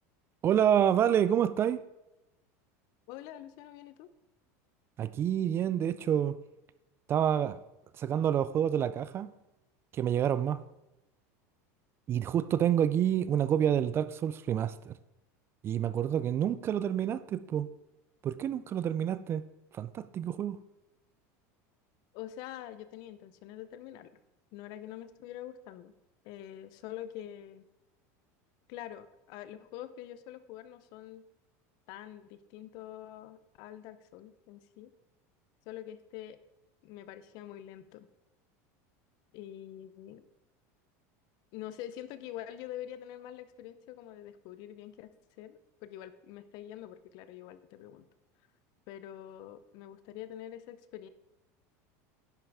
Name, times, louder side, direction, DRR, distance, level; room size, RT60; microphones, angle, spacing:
voice 1, 0.4-1.8 5.0-6.4 7.1-7.6 8.0-9.3 9.9-10.6 12.1-14.9 15.6-17.7 18.2-19.4 19.7-20.6, right 9 dB, 30° right, 0.3 m, -28 dB
voice 2, 3.1-4.1 22.1-24.1 24.5-25.9 26.2-27.6 28.7-31.2 31.9-34.9 35.7-36.4 36.8-38.1 39.3-40.3 41.5-48.0 48.9-51.1, left 12 dB, 55° left, 0.7 m, -45 dB
10.5 x 5.7 x 4.8 m
supercardioid pair, 140°, 8 cm